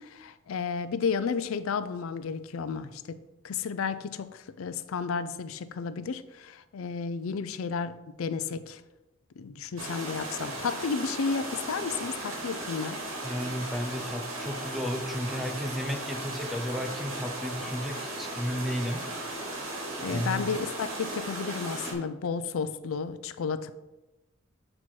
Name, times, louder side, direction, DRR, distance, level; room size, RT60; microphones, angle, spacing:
voice 1, 0.0-3.2 3.4-8.8 9.4-13.0 20.0-23.7, left 5 dB, 90° left, 13 dB, 0.4 m, -32 dB
sound 1, 9.8-21.9, right 1 dB, 75° right, 2.1 m, -36 dB
voice 2, 13.2-19.0 20.0-20.4, equal, ahead, 4 dB, 0.7 m, -33 dB
7.7 x 4.3 x 4.5 m, 1.0 s
head